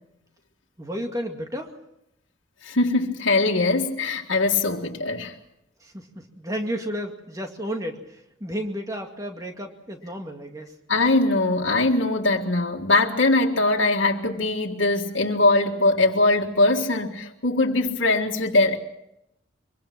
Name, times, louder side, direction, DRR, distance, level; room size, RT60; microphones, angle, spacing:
voice 1, 0.8-1.7 5.8-10.7, equal, 20° right, 2.2 m, -32 dB
voice 2, 2.6-5.4 10.9-18.8, left 2 dB, 85° left, 1.9 m, -21 dB
24.5 x 23.5 x 6.0 m
head